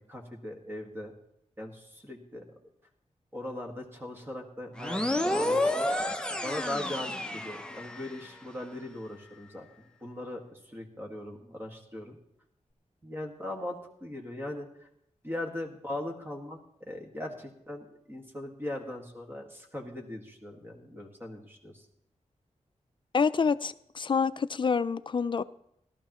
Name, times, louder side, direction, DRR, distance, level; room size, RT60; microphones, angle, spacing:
voice 1, 0.1-1.1 1.6-2.5 3.3-12.2 13.0-14.9 15.2-21.9, left 1 dB, 15° right, 2 dB, 1.9 m, -40 dB
sound 1, 4.8-8.3, left 1 dB, 5° left, 0.7 m, -30 dB
voice 2, 23.1-25.4, left 5 dB, 40° left, 14 dB, 0.4 m, -27 dB
17.0 x 12.0 x 3.1 m, 0.76 s
wide cardioid pair, 110°, 13 cm